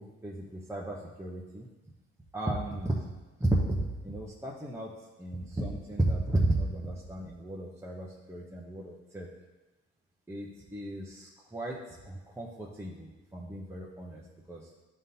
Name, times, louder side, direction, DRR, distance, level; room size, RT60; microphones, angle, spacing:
voice 1, 0.0-1.7 2.3-3.1 3.4-9.3 10.3-14.7, right 1 dB, 10° right, -3 dB, 0.8 m, -34 dB
11.0 x 3.7 x 2.8 m, 1.1 s
cardioid pair, 90°, 30 cm